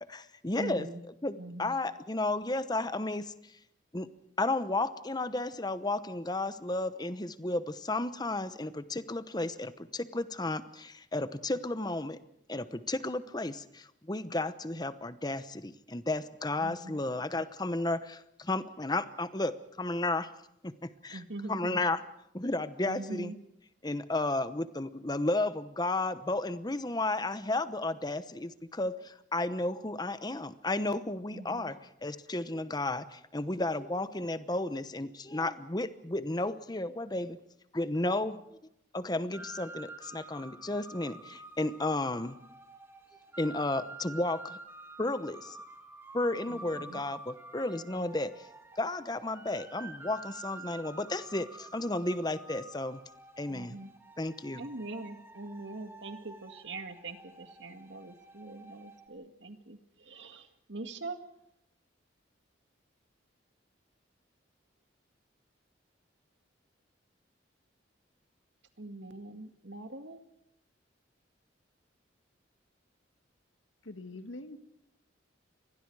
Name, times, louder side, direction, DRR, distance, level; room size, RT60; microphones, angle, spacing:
voice 1, 0.0-0.9 1.2-3.3 3.9-4.1 4.4-12.2 12.5-20.3 20.6-21.2 21.5-22.0 22.3-23.3 23.8-37.4 37.7-38.4 38.9-42.4 43.4-44.6 45.0-45.6 46.1-48.5 48.8-53.0 53.4-53.8 54.2-54.7, left 2 dB, 20° left, 13 dB, 1.0 m, -33 dB
voice 2, 0.6-1.0 1.4-1.7 16.6-17.0 21.1-21.8 22.8-23.4 31.3-31.7 46.5-47.0 53.5-53.9 54.6-61.2 68.8-70.2, right 2 dB, 70° right, 7 dB, 2.1 m, -43 dB
sound 1, 39.3-59.1, right 2 dB, 15° right, 2.0 m, -49 dB
voice 3, 73.8-74.6, left 2 dB, 90° left, 8 dB, 1.9 m, -43 dB
30.0 x 23.5 x 4.8 m, 0.79 s
head